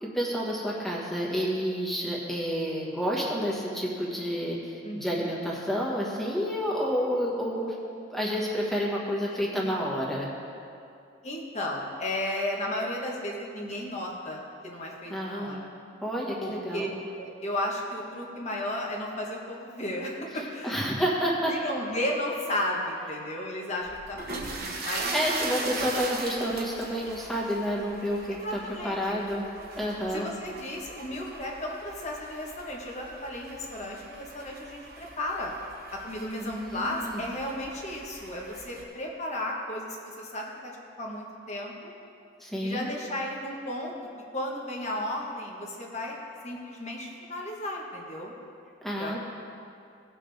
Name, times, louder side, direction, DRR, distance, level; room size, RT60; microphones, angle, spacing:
voice 1, 0.0-7.7 8.1-10.3 15.1-15.6 16.0-16.9 20.6-21.5 25.1-29.4 29.8-30.3 36.4-37.2 42.4-42.9 48.8-49.2, equal, ahead, -5 dB, 1.5 m, -29 dB
voice 2, 4.8-5.3 9.5-9.6 11.2-15.7 16.4-20.8 21.5-25.1 28.4-29.2 30.1-35.5 35.9-40.7 41.0-41.9 42.6-43.9 44.3-46.2 46.4-48.3 49.0-49.2, left 1 dB, 35° left, -1 dB, 1.3 m, -34 dB
sound 1, 23.8-38.8, right 3 dB, 50° right, 1.1 m, -39 dB
17.5 x 6.0 x 3.5 m, 2.5 s
head